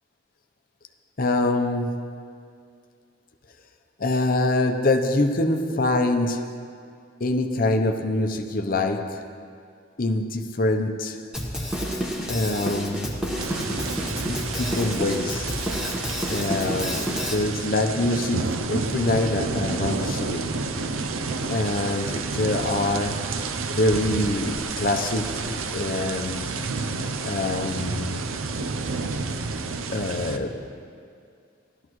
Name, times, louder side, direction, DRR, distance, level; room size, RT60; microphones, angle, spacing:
voice 1, 1.2-2.1 4.0-6.5 7.2-9.2 10.0-11.2 12.3-13.2 14.3-15.6 16.3-20.5 21.5-23.3 23.8-26.6 27.2-28.2 29.9-30.6, left 2 dB, 45° left, 5 dB, 0.7 m, -25 dB
Drum kit, 11.3-17.3, equal, 5° right, 1.2 m, -29 dB
sound 1, 13.4-30.4, right 4 dB, 90° right, 0.6 m, -30 dB
15.5 x 12.5 x 3.1 m, 2.2 s
head